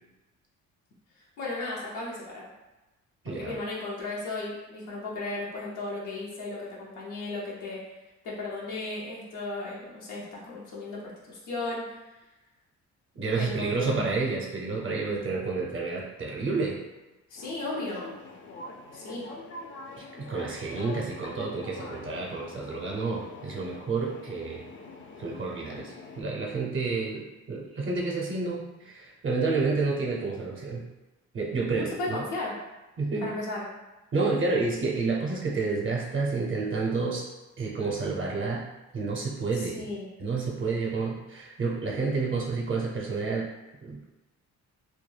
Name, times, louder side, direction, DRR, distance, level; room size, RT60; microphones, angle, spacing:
voice 1, 1.4-2.5 3.4-7.8 8.2-11.9 13.3-14.1 17.3-18.1 18.9-19.3 31.7-32.6 33.2-33.7 39.5-40.1, left 2 dB, 90° left, -5 dB, 0.7 m, -35 dB
voice 2, 3.2-3.6 13.1-16.8 20.0-24.7 25.2-30.9 31.3-32.2 33.0-33.3 34.1-37.3 37.6-38.7 38.9-39.9 40.2-43.5 43.8-44.0, right 3 dB, 40° right, -2 dB, 0.6 m, -30 dB
sound 1, 17.4-26.2, left 2 dB, 40° left, 0.4 m, -45 dB
2.3 x 2.2 x 3.2 m, 1.1 s
cardioid pair, 90°, 30 cm